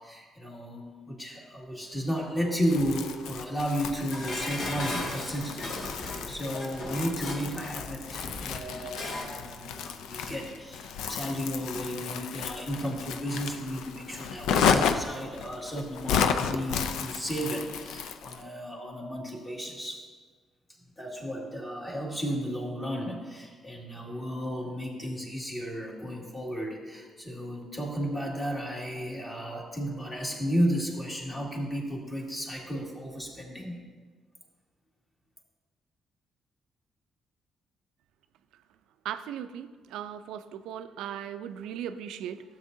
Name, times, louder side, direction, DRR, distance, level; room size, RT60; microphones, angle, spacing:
voice 1, 0.0-20.0 21.0-33.8, equal, 20° left, -2 dB, 2.1 m, -33 dB
Crumpling crinkling, 2.6-18.4, left 7 dB, 90° left, 0.4 m, -32 dB
Dishes pots and pans, 4.1-9.4 9.7-9.8, left 2 dB, 65° left, 1.5 m, -37 dB
voice 2, 39.0-42.4, right 9 dB, 90° right, 11 dB, 0.4 m, -37 dB
12.5 x 7.5 x 2.7 m, 1.5 s
cardioid pair, 90°, 0 cm